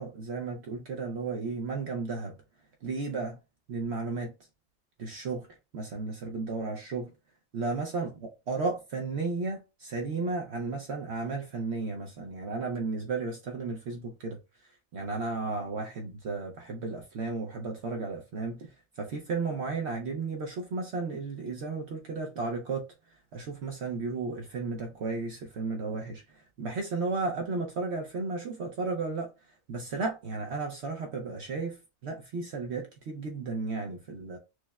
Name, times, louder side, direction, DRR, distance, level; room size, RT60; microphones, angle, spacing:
voice 1, 0.0-2.3 2.8-3.4 3.7-4.3 5.0-5.5 5.7-7.1 7.5-8.1 8.5-22.8 23.3-29.3 29.7-34.4, right 3 dB, 60° right, 0.8 m, -34 dB
6.2 x 2.1 x 2.2 m
omnidirectional pair, 1.4 m